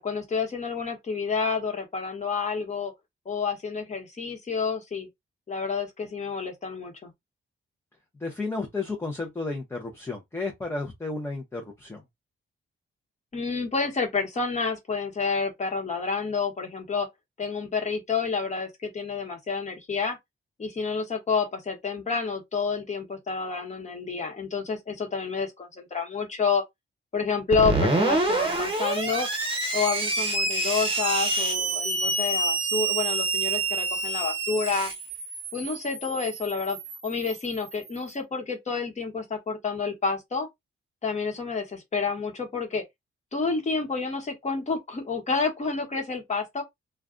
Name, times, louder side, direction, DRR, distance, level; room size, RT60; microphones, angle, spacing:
voice 1, 0.0-2.9 3.2-5.1 5.5-7.1 13.3-17.1 17.4-20.2 20.6-26.6 27.1-29.3 29.7-34.9 35.5-36.8 37.0-40.5 41.0-42.8 43.3-46.6, left 5 dB, 35° left, 1.2 m, -29 dB
voice 2, 8.2-12.0, left 3 dB, 10° left, 0.6 m, -32 dB
Screech, 27.5-38.0, right 2 dB, 25° right, 1.0 m, -27 dB
2.4 x 2.2 x 3.6 m
wide cardioid pair, 145°, 21 cm